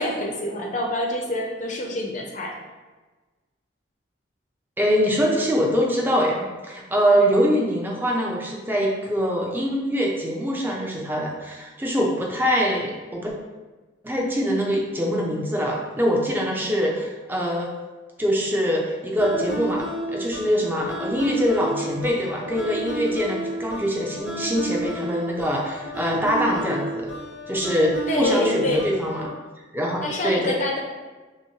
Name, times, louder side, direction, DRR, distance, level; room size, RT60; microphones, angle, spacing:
voice 1, 0.0-2.6 28.1-28.8 30.0-30.8, left 1 dB, 40° left, 0 dB, 0.6 m, -26 dB
voice 2, 4.8-13.3 14.0-17.7 18.2-19.9 20.1-27.1 27.5-29.3 29.7-30.6, equal, 10° right, -2 dB, 0.5 m, -23 dB
sound 1, 19.2-29.3, right 1 dB, 90° right, 1.2 m, -31 dB
5.5 x 2.1 x 3.0 m, 1.3 s
head